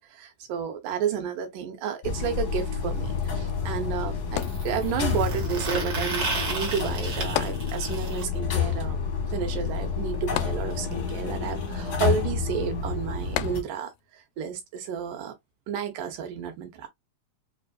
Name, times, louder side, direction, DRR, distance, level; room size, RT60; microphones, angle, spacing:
voice 1, 0.0-9.0 9.3-15.3 15.7-16.9, right 7 dB, 80° right, 2.5 m, -31 dB
sound 1, 2.0-13.6, left 5 dB, 60° left, 1.0 m, -29 dB
sound 2, 2.4-2.5 4.4-8.2 10.1-10.2 10.5-10.6 10.9-11.0 11.9-12.0, right 3 dB, 45° right, 1.6 m, -33 dB
sound 3, 4.4-5.3 7.4-8.2 8.5-8.6 10.4-11.2 13.4-14.1 14.8-14.9, left 13 dB, 85° left, 2.1 m, -34 dB
5.3 x 2.5 x 2.4 m
omnidirectional pair, 3.7 m